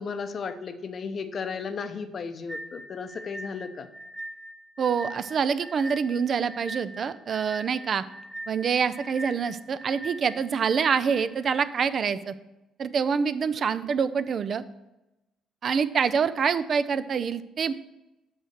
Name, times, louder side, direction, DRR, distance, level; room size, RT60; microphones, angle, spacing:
voice 1, 0.0-3.9, left 5 dB, 50° left, 9 dB, 0.7 m, -34 dB
sound 1, 2.5-11.6, right 1 dB, 20° right, 1.2 m, -41 dB
voice 2, 4.8-8.0 8.5-12.3 12.8-14.6 15.6-17.7, right 6 dB, 55° right, 13 dB, 0.4 m, -26 dB
5.9 x 5.5 x 6.4 m, 0.97 s
supercardioid pair, 70°, 0 cm